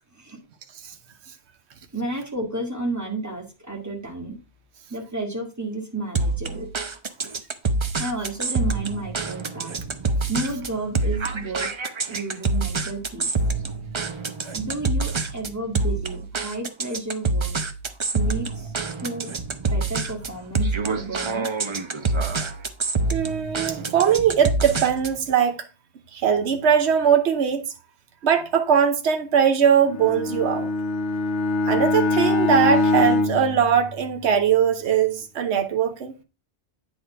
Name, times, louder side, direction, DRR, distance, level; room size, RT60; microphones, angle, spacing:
voice 1, 1.9-4.4 4.9-6.7 8.0-9.8 10.3-11.7 12.1-13.4 14.5-17.5 18.1-18.7 19.0-19.3 19.7-21.7, right 2 dB, 15° right, 1.6 m, -32 dB
sound 1, 6.1-25.2, right 3 dB, 35° right, 0.6 m, -26 dB
voice 2, 23.1-25.6 26.1-27.6 28.2-30.7 31.6-36.1, right 8 dB, 75° right, 1.1 m, -20 dB
Bowed string instrument, 29.8-34.5, left 2 dB, 85° left, 1.2 m, -23 dB
9.1 x 4.2 x 4.5 m
omnidirectional pair, 1.2 m